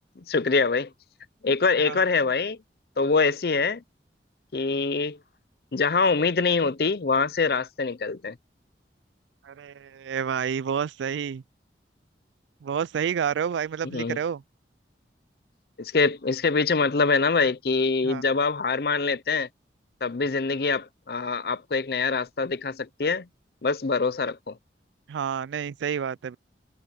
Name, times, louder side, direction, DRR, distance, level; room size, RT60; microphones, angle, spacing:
voice 1, 0.3-0.9 1.4-2.6 3.0-3.8 4.5-5.2 5.7-8.4 13.8-14.2 15.8-19.5 20.0-23.3 23.6-24.6, left 4 dB, 55° left, 0.6 m, -24 dB
voice 2, 9.4-11.4 12.6-14.4 18.0-18.2 25.1-26.4, right 7 dB, 85° right, 0.3 m, -29 dB
head